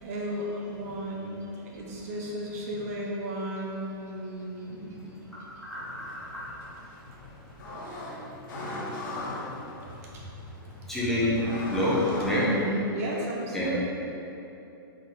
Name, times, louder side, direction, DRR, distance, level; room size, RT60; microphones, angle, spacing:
voice 1, 0.0-5.2 10.1-10.2 12.4-13.8, right 1 dB, 40° right, -2 dB, 0.6 m, -34 dB
sound 1, 5.7-12.5, left 2 dB, 50° left, 1.0 m, -39 dB
voice 2, 10.9-11.4 11.7-12.5 13.5-13.7, left 1 dB, ahead, -10 dB, 0.6 m, -26 dB
3.9 x 3.2 x 4.1 m, 2.9 s
hypercardioid pair, 165°, 13 cm